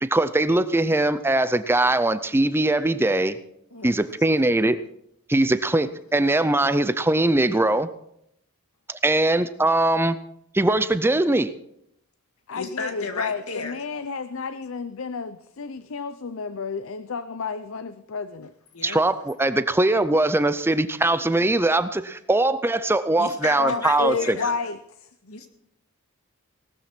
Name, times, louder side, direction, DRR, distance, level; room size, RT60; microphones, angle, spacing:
voice 1, 0.0-3.4 3.8-4.8 5.3-7.9 8.9-10.2 10.5-11.5 18.8-24.4, right 2 dB, 10° right, 13 dB, 0.5 m, -21 dB
voice 2, 3.7-4.2 12.5-13.8 18.7-19.0 23.2-24.6 25.2-25.5, left 4 dB, 80° left, 5 dB, 2.1 m, -34 dB
voice 3, 12.5-18.5 23.6-24.8, left 4 dB, 65° left, 13 dB, 0.6 m, -31 dB
18.0 x 13.0 x 4.4 m, 0.76 s
head